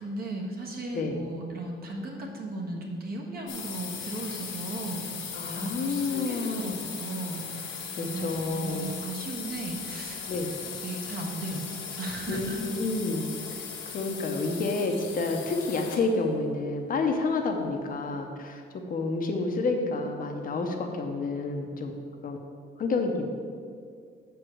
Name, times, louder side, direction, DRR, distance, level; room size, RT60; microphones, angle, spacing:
voice 1, 0.0-7.7 8.0-11.6 12.0-12.7, right 2 dB, 50° right, -1 dB, 1.5 m, -36 dB
sound 1, 3.5-16.2, left 6 dB, 65° left, 1.2 m, -38 dB
voice 2, 5.3-6.8 8.0-8.9 10.3-10.5 12.3-13.7 13.9-18.6 18.9-21.9 22.2-22.4 22.8-23.3, left 3 dB, 45° left, 3 dB, 0.8 m, -29 dB
7.2 x 4.6 x 6.5 m, 2.2 s
cardioid pair, 140°, 21 cm